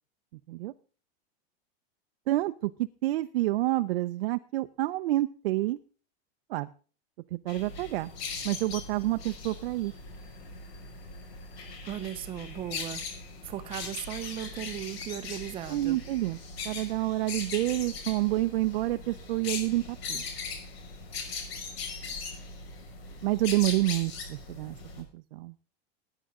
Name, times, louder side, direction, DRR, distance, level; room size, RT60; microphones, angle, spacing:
voice 1, 2.3-2.7 3.0-5.8 6.5-6.7 7.3-8.1 8.4-9.9 15.7-16.4 16.6-20.2 23.2-25.5, right 17 dB, 70° right, 9 dB, 0.6 m, -28 dB
sound 1, 7.5-25.0, left 4 dB, 80° left, 5.6 m, -40 dB
voice 2, 11.8-13.0 13.4-16.0, right 12 dB, 20° right, 11 dB, 0.7 m, -37 dB
20.0 x 10.0 x 3.7 m, 0.39 s
supercardioid pair, 175°, 30 cm